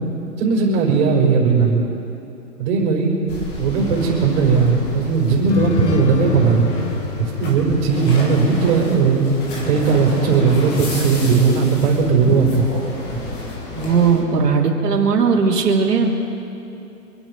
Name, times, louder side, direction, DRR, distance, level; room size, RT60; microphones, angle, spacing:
voice 1, 0.4-1.8 2.6-3.2 3.6-6.7 7.2-9.3 9.7-12.7, right 5 dB, 40° right, -4 dB, 4.7 m, -17 dB
sound 1, 3.3-14.2, left 1 dB, 20° left, 2.5 m, -30 dB
sound 2, 5.5-9.1, left 6 dB, 45° left, 1.7 m, -27 dB
voice 2, 13.8-16.1, right 5 dB, 70° right, -2 dB, 3.1 m, -17 dB
27.0 x 9.5 x 5.3 m, 2.8 s
hypercardioid pair, 150°, 48 cm